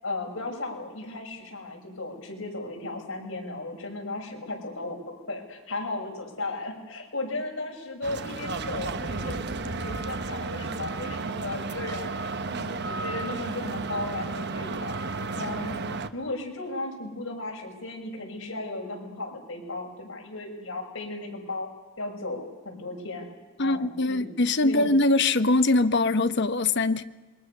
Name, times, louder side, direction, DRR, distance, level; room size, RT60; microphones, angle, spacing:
voice 1, 0.0-12.1 12.5-15.8 16.1-21.7 22.0-23.3 23.6-24.9, left 2 dB, 85° left, 0 dB, 6.6 m, -35 dB
sound 1, 8.0-16.1, right 3 dB, 55° right, 1.1 m, -33 dB
voice 2, 23.6-27.0, left 2 dB, 60° left, 11 dB, 1.0 m, -22 dB
27.5 x 23.0 x 6.8 m, 1.2 s
head